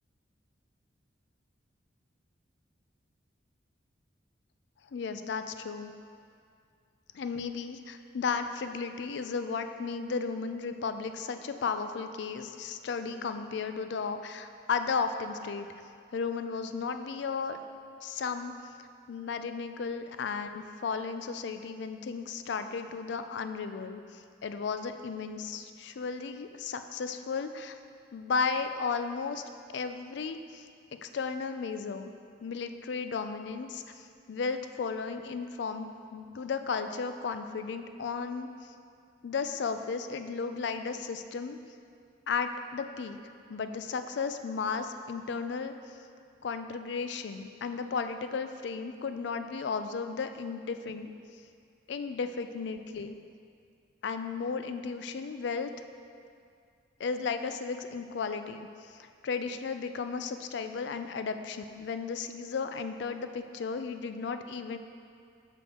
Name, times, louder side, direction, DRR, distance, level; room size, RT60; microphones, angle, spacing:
voice 1, 4.9-5.9 7.1-15.7 16.1-17.6 18.0-18.5 19.1-27.7 28.1-29.4 29.7-30.6 31.0-32.1 32.4-38.5 39.2-41.6 42.3-43.2 43.5-45.7 46.4-51.1 51.9-53.2 54.0-55.7 57.0-58.7 59.2-64.8, left 5 dB, 65° left, 9 dB, 0.4 m, -34 dB
6.9 x 6.6 x 3.6 m, 2.3 s
head